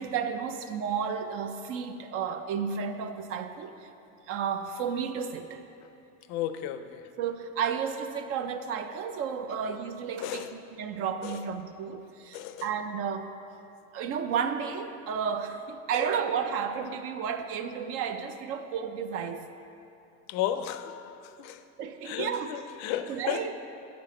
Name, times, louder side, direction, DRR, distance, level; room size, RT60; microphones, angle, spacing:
voice 1, 0.0-3.9 4.3-5.6 7.2-10.5 10.8-13.3 13.9-19.4 21.8-22.5 23.1-23.5, right 7 dB, 45° right, 9 dB, 0.5 m, -32 dB
voice 2, 6.3-7.1 10.2-10.5 11.2-11.4 12.3-12.7 20.3-21.6 22.0-23.5, left 11 dB, 55° left, 10 dB, 0.5 m, -34 dB
8.2 x 6.0 x 4.8 m, 2.7 s
cardioid pair, 155°, 32 cm